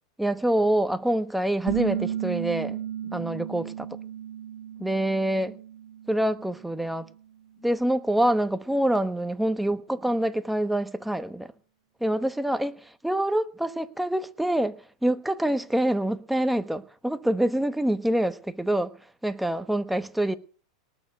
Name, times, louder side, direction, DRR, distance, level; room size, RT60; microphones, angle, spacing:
voice 1, 0.2-3.9 4.8-5.6 6.1-7.1 7.6-11.5 12.0-12.7 13.0-18.9 19.2-20.4, right 1 dB, 5° right, 1.0 m, -26 dB
sound 1, 1.7-7.1, right 10 dB, 85° right, 1.3 m, -34 dB
19.0 x 6.8 x 6.8 m
hypercardioid pair, 125°, 3 cm